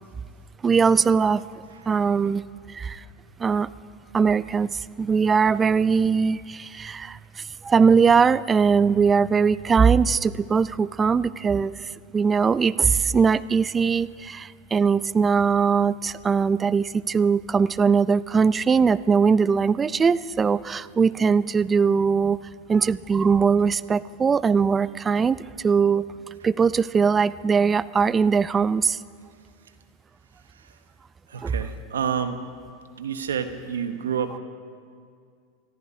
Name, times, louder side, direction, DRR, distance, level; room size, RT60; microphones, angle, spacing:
voice 1, 0.6-1.4 1.9-2.4 2.7-3.0 3.4-3.7 4.1-7.2 7.6-11.7 12.1-22.4 22.7-25.4 25.6-26.1 26.4-29.0 31.4-31.5, right 5 dB, 20° right, 17 dB, 0.4 m, -20 dB
voice 2, 30.5-30.8 31.3-32.4 33.0-34.4, right 7 dB, 85° right, 9 dB, 1.0 m, -29 dB
29.5 x 14.5 x 2.8 m, 2.2 s
hypercardioid pair, 95°, 0 cm